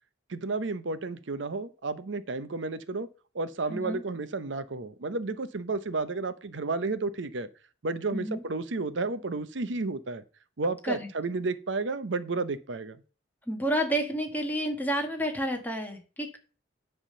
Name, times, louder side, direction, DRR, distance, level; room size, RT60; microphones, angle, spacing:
voice 1, 0.3-3.1 3.3-7.5 7.8-10.2 10.6-13.0, right 3 dB, 75° right, 0.7 m, -32 dB
voice 2, 3.7-4.0 8.1-8.4 10.8-11.1 13.5-16.4, equal, 10° left, 1.5 m, -30 dB
10.0 x 3.6 x 6.6 m
head